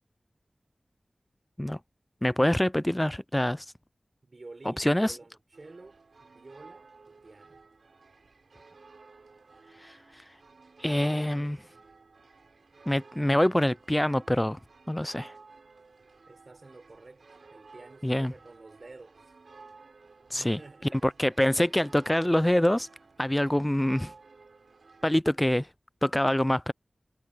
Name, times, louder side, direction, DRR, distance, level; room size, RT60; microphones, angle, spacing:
voice 1, 2.2-3.7 4.7-5.2 9.8-10.2 10.8-11.6 12.9-14.6 14.9-15.3 18.0-18.3 20.3-20.6 20.9-22.9 23.2-24.1 25.0-25.7 26.0-26.7, left 1 dB, 15° left, 0.3 m, -25 dB
voice 2, 4.2-7.6 16.3-17.2 17.5-19.2 20.3-21.2, right 3 dB, 60° right, 4.6 m, -50 dB
sound 1, 5.5-25.1, right 4 dB, 85° right, 6.1 m, -54 dB
wide cardioid pair, 50°, 0 cm